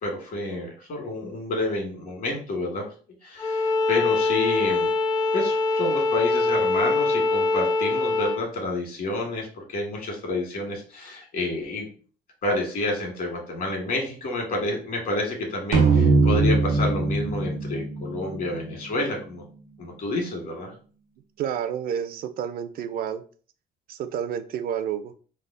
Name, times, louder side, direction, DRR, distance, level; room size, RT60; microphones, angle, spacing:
voice 1, 0.0-2.9 3.2-4.9 5.3-11.9 12.4-19.4 19.8-20.7, left 2 dB, 60° left, 1 dB, 1.6 m, -29 dB
Bowed string instrument, 3.4-8.4, left 3 dB, 25° left, 0.4 m, -23 dB
sound 1, 15.7-19.2, right 3 dB, 90° right, 1.0 m, -22 dB
voice 2, 21.4-23.2 23.9-25.1, right 8 dB, 60° right, 11 dB, 0.4 m, -30 dB
3.4 x 2.0 x 3.7 m, 0.41 s
cardioid pair, 110°, 17 cm